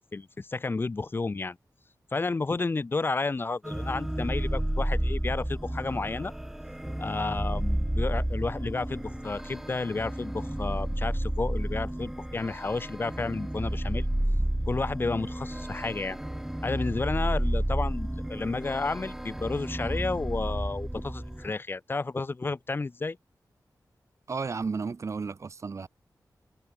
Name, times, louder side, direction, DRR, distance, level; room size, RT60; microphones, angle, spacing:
voice 1, 0.1-1.6 2.1-6.3 7.0-14.1 14.7-16.2 16.6-23.2, left 3 dB, 30° left, 2.3 m, -31 dB
sound 1, 3.6-21.5, right 1 dB, 5° right, 0.7 m, -31 dB
voice 2, 24.3-25.9, right 4 dB, 45° right, 2.1 m, -33 dB
wide cardioid pair, 175°, 7 cm